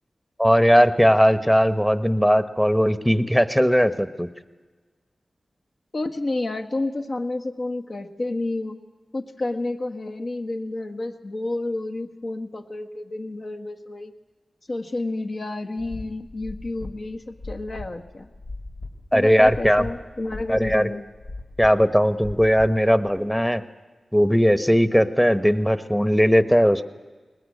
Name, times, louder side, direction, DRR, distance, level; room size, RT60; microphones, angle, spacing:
voice 1, 0.4-4.3 19.1-19.9 20.5-20.9 21.6-23.6 24.1-26.8, equal, 5° left, 12 dB, 1.0 m, -18 dB
voice 2, 5.9-8.8 9.1-14.1 14.7-18.3 19.1-21.0, left 2 dB, 55° left, 4 dB, 1.3 m, -30 dB
sound 1, 15.8-23.2, left 2 dB, 85° left, 4.0 m, -39 dB
20.5 x 20.0 x 8.5 m, 1.3 s
cardioid pair, 60°, 0 cm